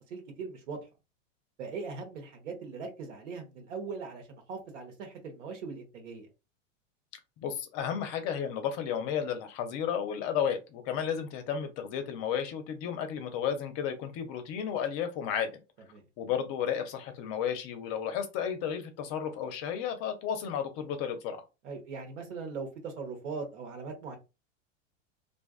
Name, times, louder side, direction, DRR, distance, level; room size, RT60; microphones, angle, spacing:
voice 1, 0.1-0.8 1.6-6.3 15.9-16.0 21.6-24.2, right 4 dB, 70° right, 1.1 m, -40 dB
voice 2, 7.4-15.6 16.2-21.4, left 8 dB, 40° left, 0.5 m, -33 dB
2.5 x 2.3 x 2.3 m
hypercardioid pair, 100°, 37 cm